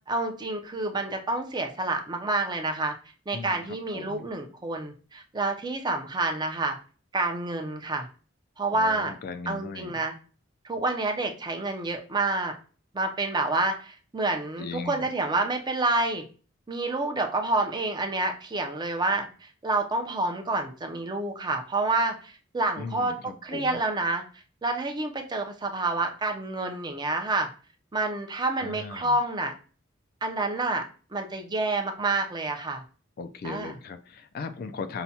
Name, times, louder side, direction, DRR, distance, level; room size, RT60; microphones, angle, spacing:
voice 1, 0.1-2.9 3.3-6.8 7.1-8.1 8.6-9.1 9.5-10.1 10.6-12.5 12.9-16.2 16.7-23.1 23.4-24.2 24.6-27.5 27.9-29.5 30.2-30.8 31.1-32.8 33.4-33.7, right 2 dB, 20° right, 4 dB, 0.5 m, -28 dB
voice 2, 3.3-4.3 8.7-10.0 14.6-15.1 22.8-23.8 28.6-29.2 33.2-35.0, left 4 dB, 50° left, 9 dB, 0.3 m, -38 dB
5.7 x 2.2 x 2.7 m, 0.37 s
head